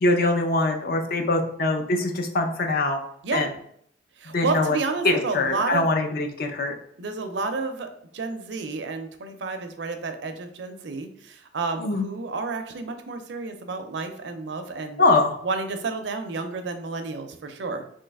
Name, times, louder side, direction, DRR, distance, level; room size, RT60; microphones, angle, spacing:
voice 1, 0.0-3.0 3.3-3.5 4.3-4.8 5.0-6.7 11.8-12.1 15.0-15.4, left 2 dB, 50° left, 4 dB, 0.5 m, -23 dB
voice 2, 4.2-5.9 7.0-15.0 15.4-17.8, right 3 dB, 70° right, 7 dB, 0.5 m, -30 dB
3.1 x 2.8 x 3.5 m, 0.67 s
head